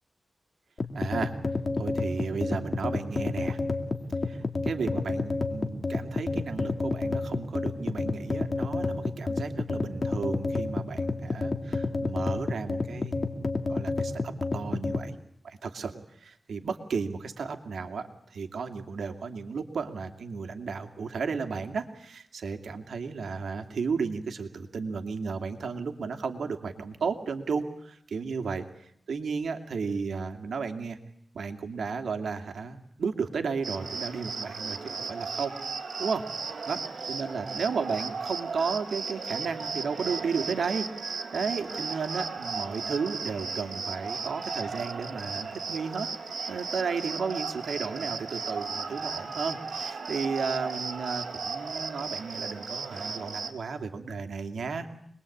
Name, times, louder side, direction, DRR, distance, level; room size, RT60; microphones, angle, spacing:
sound 1, 0.8-15.1, left 3 dB, 45° left, 2.4 m, -30 dB
voice 1, 0.9-1.3 1.8-3.6 4.2-15.1 15.4-28.6 29.1-31.0 31.3-34.8 35.1-35.6 36.0-36.8 37.1-40.9 41.3-46.1 46.5-54.9, right 5 dB, 85° right, 5 dB, 2.6 m, -33 dB
Cricket, 33.6-53.5, right 5 dB, 65° right, 3.3 m, -35 dB
26.5 x 21.5 x 8.7 m, 0.69 s
wide cardioid pair, 95°, 0 cm